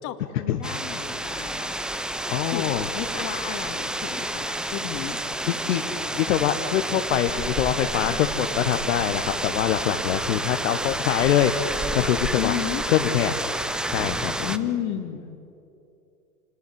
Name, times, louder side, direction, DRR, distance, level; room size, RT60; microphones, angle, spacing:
voice 1, 0.0-1.8 2.4-5.2 12.3-12.8 14.4-15.3, left 11 dB, 40° left, 8 dB, 2.3 m, -32 dB
sound 1, 0.6-14.6, right 1 dB, ahead, 0.5 m, -30 dB
voice 2, 2.3-2.9 5.4-12.5 12.9-13.3 13.9-14.3, left 10 dB, 55° left, 4 dB, 1.5 m, -24 dB
28.0 x 19.5 x 9.9 m, 2.8 s
figure-of-eight pair, 90°, 46 cm